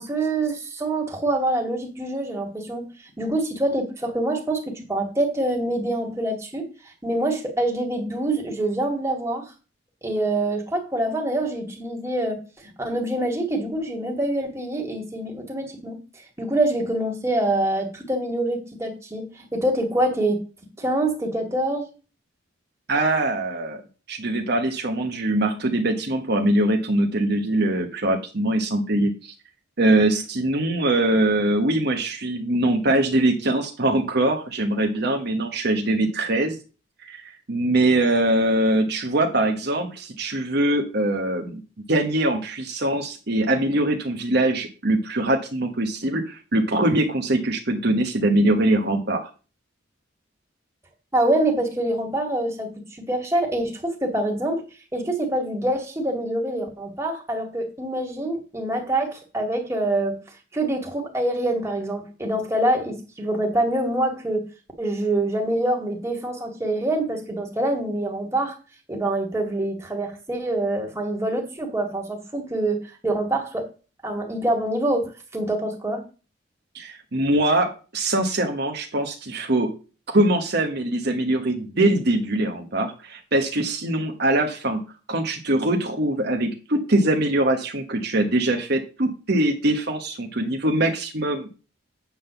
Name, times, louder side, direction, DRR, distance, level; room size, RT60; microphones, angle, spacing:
voice 1, 0.0-2.8 3.2-6.7 7.0-9.5 10.0-16.0 16.4-20.4 20.8-21.9 51.1-54.6 54.9-60.2 60.5-64.5 64.8-68.6 68.9-73.7 74.0-76.0, right 1 dB, 15° right, 1 dB, 2.1 m, -25 dB
voice 2, 22.9-23.8 24.1-29.3 29.8-36.6 37.1-41.6 41.9-49.3 76.7-79.7 80.1-84.8 85.1-91.5, right 1 dB, 55° right, 4 dB, 1.3 m, -22 dB
8.8 x 3.9 x 7.0 m, 0.33 s
head